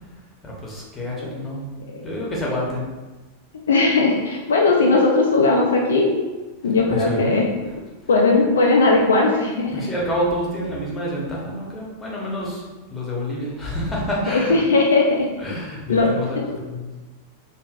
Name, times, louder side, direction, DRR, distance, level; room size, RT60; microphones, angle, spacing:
voice 1, 0.4-2.8 6.9-7.6 9.7-12.6 12.9-14.6 15.4-16.4 16.7-16.9, equal, 15° left, -4 dB, 0.9 m, -28 dB
voice 2, 3.7-6.2 6.6-7.5 8.1-9.9 14.3-15.3 15.9-16.1, left 3 dB, 65° left, -1 dB, 0.3 m, -18 dB
3.3 x 2.5 x 2.4 m, 1.2 s
figure-of-eight pair, 90°, 0 cm